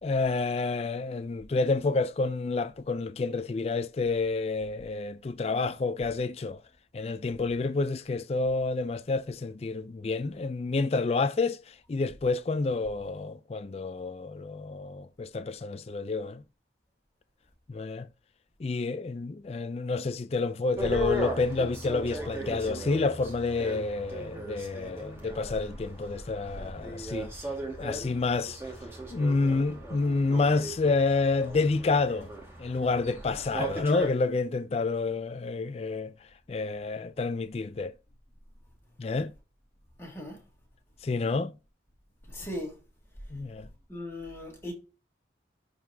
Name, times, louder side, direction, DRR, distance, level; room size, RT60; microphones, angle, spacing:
voice 1, 0.0-6.6 6.9-16.4 17.7-18.1 18.6-27.3 27.8-28.7 29.1-32.3 32.6-36.1 36.5-37.9 39.0-39.3 41.0-41.5 43.3-43.7, left 3 dB, 35° left, 0.3 m, -29 dB
sound 1, 20.8-34.1, right 1 dB, 15° right, 1.9 m, -38 dB
voice 2, 40.0-40.4 42.3-42.8 43.9-44.7, left 1 dB, 15° left, 2.2 m, -38 dB
11.5 x 4.0 x 2.8 m
head